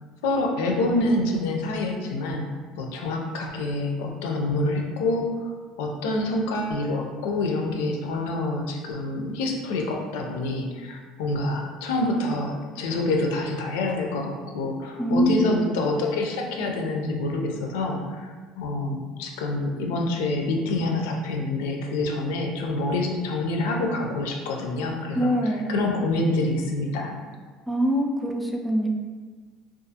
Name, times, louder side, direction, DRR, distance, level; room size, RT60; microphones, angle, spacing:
voice 1, 0.2-2.5 2.8-5.5 5.8-27.2, left 2 dB, 90° left, 1 dB, 0.4 m, -27 dB
voice 2, 15.0-15.6 25.1-25.7 27.7-28.9, equal, 5° right, 1 dB, 0.3 m, -23 dB
2.4 x 2.3 x 2.7 m, 1.5 s
supercardioid pair, 110°, 0 cm